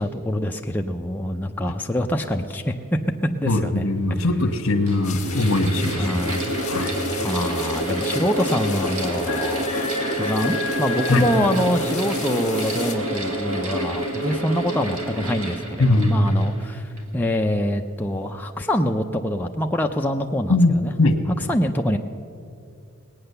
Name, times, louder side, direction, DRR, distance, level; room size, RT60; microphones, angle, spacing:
voice 1, 0.0-2.7 3.2-3.9 4.2-4.3 6.0-6.5 7.2-9.8 10.2-20.9 21.3-22.0, equal, 10° left, 2 dB, 0.4 m, -25 dB
voice 2, 3.5-6.1 6.7-6.9 11.1-11.2 15.8-16.3 20.5-20.7 21.0-21.2, left 2 dB, 65° left, 8 dB, 1.2 m, -20 dB
Mechanical fan, 3.5-3.6 4.5-17.2, right 1 dB, 75° right, 1.8 m, -28 dB
sound 1, 5.0-13.0, left 7 dB, 35° left, 1.4 m, -34 dB
19.5 x 8.8 x 6.7 m, 2.4 s
head